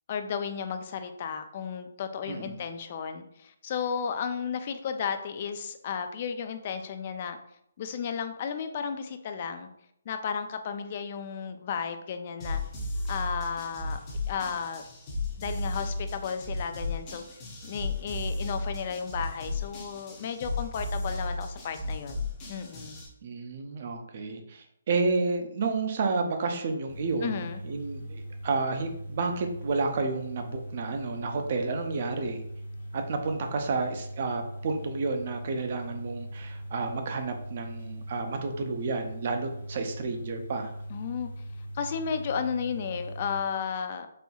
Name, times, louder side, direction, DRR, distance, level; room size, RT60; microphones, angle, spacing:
voice 1, 0.1-7.4 7.8-9.7 10.1-12.6 13.1-14.0 14.3-14.8 15.4-17.2 17.6-22.2 22.5-23.0 27.2-27.6 40.9-41.3 41.7-44.1, left 6 dB, 35° left, 8 dB, 0.3 m, -33 dB
voice 2, 2.3-2.6 23.2-32.4 32.9-40.7, right 4 dB, 40° right, 5 dB, 0.5 m, -31 dB
sound 1, 12.4-23.1, left 2 dB, 20° left, 0.7 m, -34 dB
sound 2, 26.9-43.4, right 1 dB, 70° left, 1.1 m, -40 dB
4.2 x 2.7 x 2.3 m, 0.75 s
hypercardioid pair, 165°, 0 cm